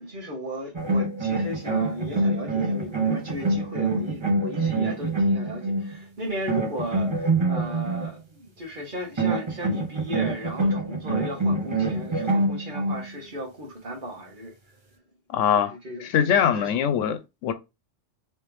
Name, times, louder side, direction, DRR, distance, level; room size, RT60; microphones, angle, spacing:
voice 1, 0.0-14.5 15.4-16.1 16.5-16.7, equal, 45° right, 1.3 m, -36 dB
sound 1, 0.7-5.9 6.5-8.1 9.2-13.0, right 2 dB, 30° right, 0.7 m, -25 dB
voice 2, 15.3-15.7 16.0-17.5, left 8 dB, 85° left, 1.0 m, -22 dB
3.3 x 3.2 x 3.1 m
omnidirectional pair, 1.2 m